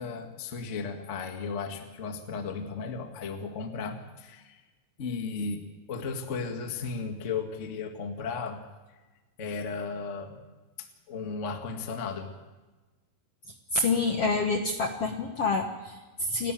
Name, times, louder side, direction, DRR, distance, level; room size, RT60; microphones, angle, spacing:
voice 1, 0.0-4.6 5.0-8.6 9.4-10.4 10.8-12.3, left 5 dB, 35° left, 4 dB, 1.3 m, -35 dB
voice 2, 13.7-16.5, left 3 dB, 55° left, 4 dB, 1.7 m, -27 dB
29.0 x 12.5 x 9.1 m, 1.2 s
omnidirectional pair, 4.4 m